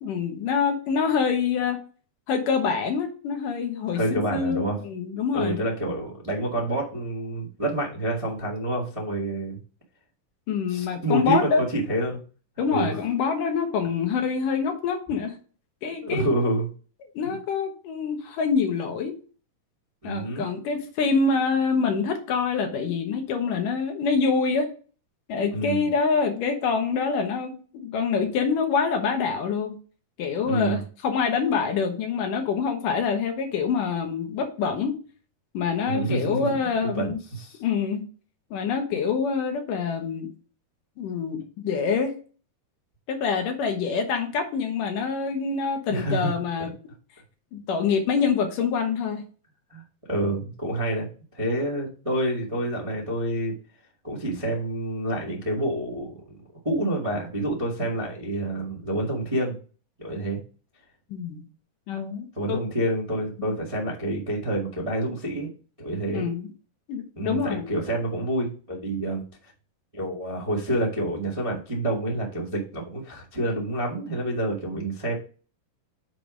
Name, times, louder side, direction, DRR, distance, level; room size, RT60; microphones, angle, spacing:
voice 1, 0.0-1.8 2.3-5.6 10.5-11.6 12.6-15.4 15.8-16.3 17.1-19.1 20.0-24.7 25.3-29.8 30.2-35.0 35.5-37.2 37.6-38.0 38.5-40.3 41.0-42.1 43.1-46.7 47.5-49.2 61.1-61.4 61.9-62.6 63.4-63.5 66.1-66.5 66.9-67.7, left 5 dB, 65° left, 5 dB, 2.4 m, -26 dB
voice 2, 3.9-4.8 5.3-9.6 10.7-12.2 12.7-13.0 16.0-16.7 17.2-17.3 20.0-20.5 25.5-25.9 30.4-30.8 35.8-36.6 37.0-37.6 45.9-46.3 49.7-49.8 50.1-53.5 54.0-56.4 56.6-59.6 60.0-60.4 62.3-65.5 65.8-66.3 67.2-69.2 69.9-75.1, right 1 dB, 45° right, -3 dB, 0.4 m, -28 dB
7.2 x 4.8 x 5.0 m, 0.38 s
omnidirectional pair, 4.7 m